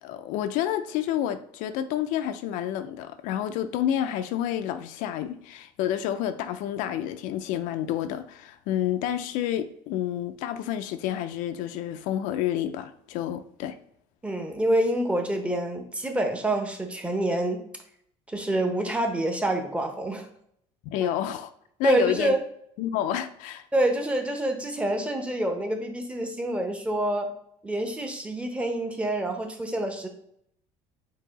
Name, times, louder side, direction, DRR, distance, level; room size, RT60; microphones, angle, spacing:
voice 1, 0.0-13.8 20.8-21.5 21.8-22.3 22.8-23.7, left 11 dB, 70° left, 0.4 m, -29 dB
voice 2, 14.2-17.6 18.3-20.3 21.0-21.1 21.8-22.4 23.7-27.3 27.6-30.1, right 1 dB, 10° right, 0.8 m, -27 dB
4.6 x 2.7 x 4.0 m
cardioid pair, 125°, 14 cm